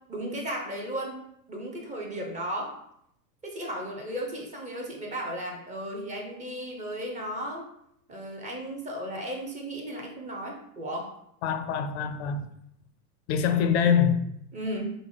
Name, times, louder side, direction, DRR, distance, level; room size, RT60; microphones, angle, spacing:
voice 1, 0.1-1.2 1.5-2.8 3.4-7.7 8.1-11.1 14.5-14.9, right 1 dB, 15° right, 0.7 m, -35 dB
voice 2, 11.4-12.5 13.3-14.3, left 7 dB, 45° left, 0.5 m, -24 dB
4.8 x 2.1 x 3.8 m
hypercardioid pair, 120°, 47 cm